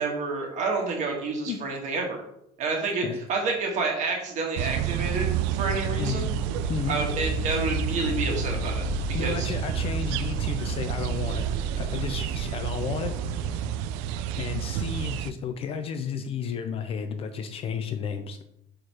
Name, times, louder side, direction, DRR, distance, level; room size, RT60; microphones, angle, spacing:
voice 1, 0.0-2.2 2.6-6.3 6.9-8.9 9.2-9.5, right 3 dB, 45° right, 1 dB, 1.5 m, -29 dB
sound 1, 4.6-15.3, right 9 dB, 85° right, 0.4 m, -29 dB
sound 2, 5.2-12.4 13.0-13.7, left 3 dB, 70° left, 1.0 m, -37 dB
voice 2, 6.0-6.3 6.7-7.0 9.1-11.5 11.8-13.1 14.3-18.4, left 7 dB, 35° left, 8 dB, 0.4 m, -32 dB
4.5 x 4.4 x 4.7 m, 0.77 s
cardioid pair, 165°, 18 cm